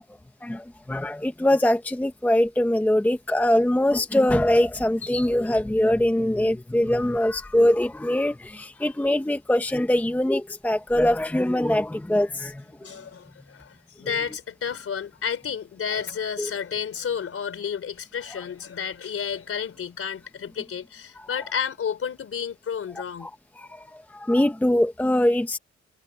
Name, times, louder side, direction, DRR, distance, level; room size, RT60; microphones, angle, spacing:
voice 1, 0.4-12.6 16.4-16.5 23.2-23.3 23.6-25.6, left 1 dB, 5° left, 0.8 m, -22 dB
voice 2, 12.8-23.3, left 7 dB, 50° left, 3.7 m, -31 dB
wide cardioid pair, 160°, 29 cm